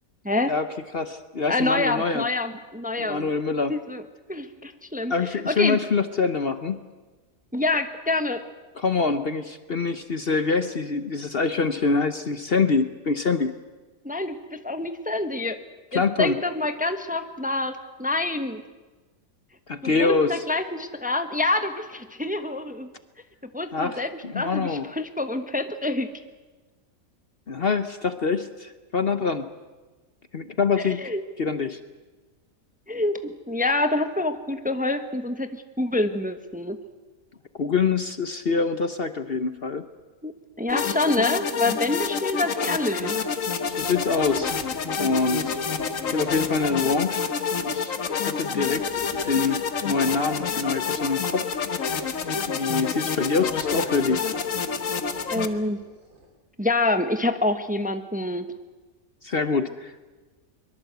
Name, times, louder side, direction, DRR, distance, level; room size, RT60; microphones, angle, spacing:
voice 1, 0.9-2.2 3.0-3.7 5.1-6.8 8.8-13.5 15.9-16.4 19.7-20.4 23.7-24.9 27.5-29.4 30.3-31.1 31.4-31.8 37.6-39.9 43.7-44.5 45.0-45.6 46.1-47.3 47.6-51.6 52.5-54.3 59.2-60.1, left 4 dB, 45° left, 10 dB, 1.1 m, -25 dB
voice 2, 1.5-3.3 3.7-4.0 4.3-5.1 5.5-5.8 7.5-8.4 14.0-15.6 15.9-18.6 19.8-22.9 23.5-26.1 30.9-31.2 32.9-35.5 35.8-36.8 40.2-40.3 40.6-43.2 55.3-55.8 56.6-58.5, left 2 dB, 5° right, 8 dB, 1.0 m, -26 dB
sound 1, 40.7-55.5, left 6 dB, 65° left, 1.6 m, -28 dB
sound 2, 43.8-47.1 48.6-52.4 53.3-56.3, right 1 dB, 80° right, 5.0 m, -48 dB
23.5 x 22.5 x 8.1 m, 1.3 s
omnidirectional pair, 1.5 m